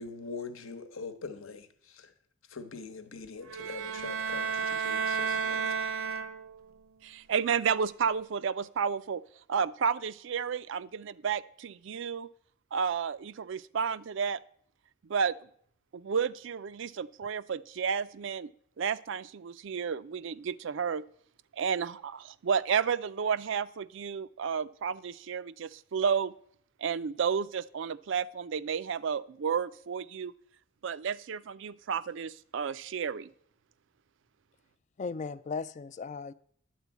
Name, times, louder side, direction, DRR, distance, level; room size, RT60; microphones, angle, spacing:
voice 1, 0.0-2.1 2.5-5.8, left 4 dB, 75° left, 1.1 m, -43 dB
sound 1, 3.5-6.7, right 5 dB, 85° right, 0.8 m, -32 dB
voice 2, 7.0-9.2 9.5-12.3 12.7-14.4 15.1-15.4 15.9-18.5 18.8-21.0 21.5-26.3 26.8-30.3 30.8-33.3, right 6 dB, 60° right, 0.4 m, -31 dB
voice 3, 35.0-36.3, left 4 dB, 35° left, 0.3 m, -36 dB
11.0 x 4.5 x 8.2 m
head